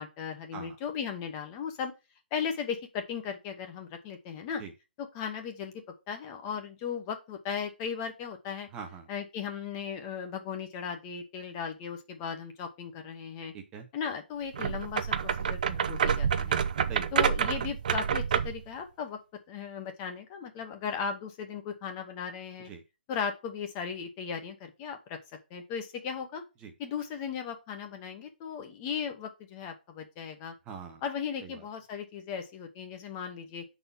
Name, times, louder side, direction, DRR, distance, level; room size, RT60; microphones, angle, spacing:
voice 1, 0.0-1.9 2.3-4.6 5.0-5.7 6.1-8.7 9.1-13.5 13.9-16.6 17.1-19.2 19.5-22.7 23.1-25.2 25.5-26.4 26.8-30.5 31.0-33.6, left 7 dB, 20° left, 5 dB, 0.9 m, -37 dB
voice 2, 8.7-9.1 13.5-13.9 16.9-17.1 22.6-22.8 26.6-26.7 30.7-31.0 31.4-31.7, right 6 dB, 15° right, 4 dB, 0.9 m, -42 dB
sound 1, 14.5-18.6, right 7 dB, 50° right, 0.6 m, -28 dB
6.7 x 4.1 x 5.5 m, 0.27 s
hypercardioid pair, 165°, 6 cm